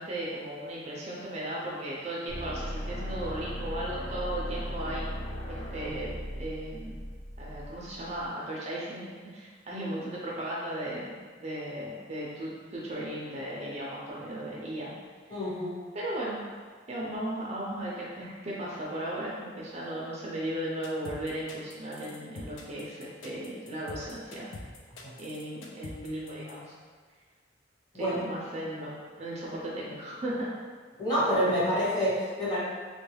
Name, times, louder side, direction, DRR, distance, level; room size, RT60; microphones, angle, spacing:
voice 1, 0.0-5.1 5.5-7.0 7.4-14.9 15.9-16.4 16.9-24.5 25.2-26.7 27.9-28.9 29.2-30.5 31.1-31.6, right 1 dB, 35° right, -5 dB, 0.5 m, -36 dB
sound 1, 2.3-8.3, equal, 45° left, 0.6 m, -37 dB
voice 2, 15.3-15.8 25.0-25.1 27.9-28.2 31.0-32.6, equal, 25° left, -9 dB, 1.2 m, -27 dB
sound 2, 20.8-26.5, left 3 dB, 90° left, 0.5 m, -45 dB
3.3 x 2.3 x 3.2 m, 1.5 s
head